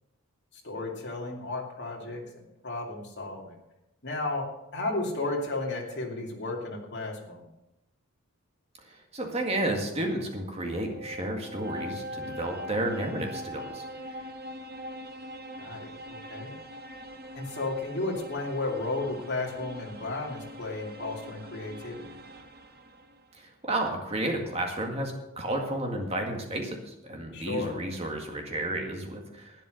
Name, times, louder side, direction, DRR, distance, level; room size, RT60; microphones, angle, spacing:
voice 1, 0.5-3.6 4.0-4.5 4.7-7.5 15.6-16.5 17.4-22.1 27.3-27.7, left 2 dB, 50° left, -1 dB, 2.7 m, -33 dB
voice 2, 8.9-14.2 23.3-29.5, right 1 dB, 30° right, 2 dB, 2.0 m, -32 dB
sound 1, 10.5-23.3, equal, 45° right, 1.2 m, -42 dB
11.5 x 9.8 x 6.5 m, 0.91 s
head